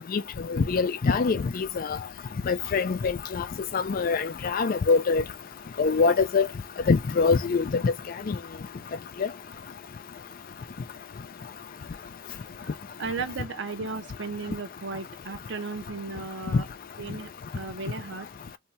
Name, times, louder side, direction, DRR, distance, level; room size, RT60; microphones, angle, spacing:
voice 1, 0.5-1.9 2.5-3.4 3.7-5.2 5.8-6.5 6.9-7.9 8.3-8.4 16.5-16.6, left 4 dB, 45° left, 0.4 m, -23 dB
voice 2, 12.6-16.7 17.0-18.3, right 4 dB, 60° right, 0.7 m, -35 dB
2.7 x 2.3 x 4.1 m
head